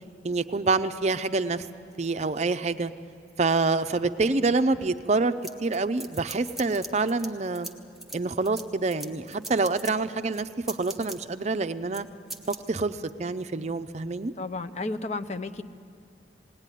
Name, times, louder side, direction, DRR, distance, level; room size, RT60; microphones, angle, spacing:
voice 1, 0.2-1.7 2.0-2.9 3.4-5.3 5.6-7.7 8.1-12.1 12.5-14.3, right 3 dB, 40° right, 11 dB, 0.5 m, -26 dB
sound 1, 5.4-7.3 7.5-9.9 10.3-11.2 11.9-12.0 12.3-12.6, right 2 dB, ahead, 1.1 m, -40 dB
voice 2, 14.4-15.6, left 3 dB, 40° left, 9 dB, 0.7 m, -32 dB
19.5 x 18.0 x 9.9 m, 2.3 s
head